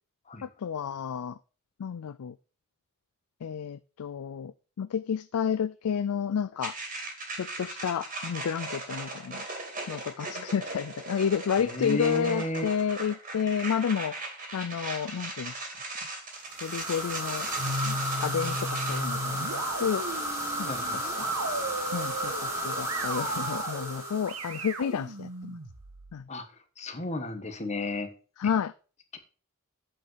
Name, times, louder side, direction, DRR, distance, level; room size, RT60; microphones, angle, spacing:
voice 1, 0.4-1.4 1.8-2.3 3.4-4.5 4.8-6.7 7.4-9.4 9.9-15.7 16.6-20.1 20.6-21.3 21.9-25.6 26.1-26.2 28.4-28.7, left 7 dB, 85° left, 0.4 m, -31 dB
sound 1, 6.6-19.0, right 2 dB, 35° right, 2.8 m, -38 dB
voice 2, 11.6-12.6 20.7-21.0 26.3-26.4 26.8-28.1 29.1-29.2, left 2 dB, 30° left, 1.4 m, -32 dB
sound 2, 16.5-25.0, right 1 dB, 15° right, 2.9 m, -33 dB
sound 3, 17.6-26.2, right 1 dB, 75° right, 1.4 m, -36 dB
8.7 x 5.4 x 5.7 m
head